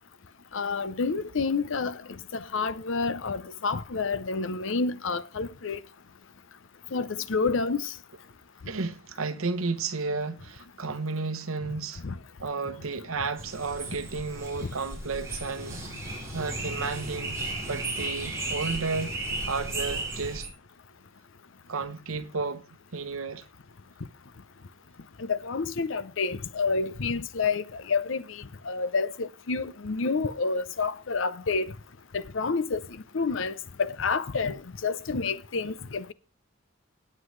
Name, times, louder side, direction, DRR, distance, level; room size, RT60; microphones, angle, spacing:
voice 1, 0.5-2.0 2.3-5.8 6.9-7.9 12.0-12.1 25.2-31.7 32.1-32.8 33.1-36.0, left 4 dB, 65° left, 0.6 m, -29 dB
voice 2, 8.7-12.0 12.4-15.8 16.3-17.4 17.7-19.2 19.5-20.5 21.7-22.6 22.9-23.4, right 4 dB, 85° right, 1.0 m, -32 dB
sound 1, 13.4-20.5, right 2 dB, 15° right, 5.2 m, -35 dB
17.5 x 7.7 x 3.2 m
head